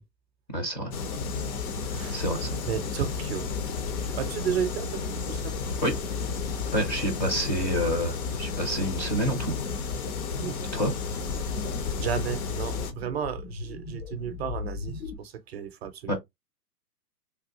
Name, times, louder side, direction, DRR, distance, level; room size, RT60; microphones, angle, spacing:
voice 1, 0.5-0.9 2.1-2.5 5.8-5.9 6.7-9.5 10.7-10.9 16.1-16.2, equal, 15° left, 0.4 m, -28 dB
sound 1, 0.9-12.9, left 5 dB, 60° left, 0.9 m, -32 dB
voice 2, 1.9-2.2 2.7-3.5 4.1-5.5 10.4-10.6 12.0-16.1, right 8 dB, 40° right, 0.5 m, -33 dB
sound 2, 9.7-15.1, left 5 dB, 90° left, 1.0 m, -38 dB
3.3 x 2.3 x 2.8 m
hypercardioid pair, 125°, 49 cm